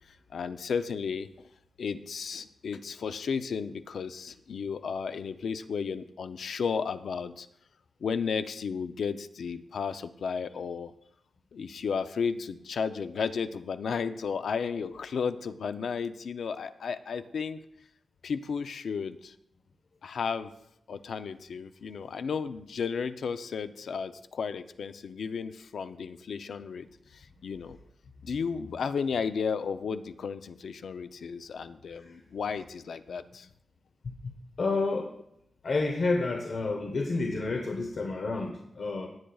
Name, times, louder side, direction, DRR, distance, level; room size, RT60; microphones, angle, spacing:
voice 1, 0.3-1.3 1.8-7.5 8.0-10.9 11.5-17.6 18.2-19.3 20.0-20.5 20.9-26.9 27.1-27.8 28.2-33.5, left 6 dB, 65° left, 11 dB, 0.5 m, -33 dB
voice 2, 34.6-35.1 35.6-39.1, left 3 dB, 45° left, 3 dB, 0.9 m, -29 dB
17.0 x 8.8 x 2.3 m, 0.76 s
wide cardioid pair, 175°, 0 cm